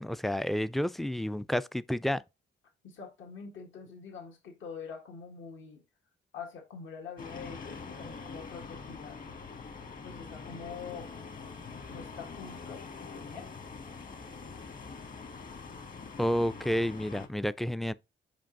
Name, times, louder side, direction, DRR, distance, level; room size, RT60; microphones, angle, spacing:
voice 1, 0.0-2.2 16.2-17.9, equal, ahead, 0.3 m, -30 dB
voice 2, 2.8-5.8 6.3-9.3 10.0-11.1 11.9-13.5, left 6 dB, 75° left, 1.8 m, -45 dB
sound 1, 7.2-17.3, left 4 dB, 45° left, 1.5 m, -44 dB
5.3 x 5.2 x 3.8 m
cardioid pair, 90°, 20 cm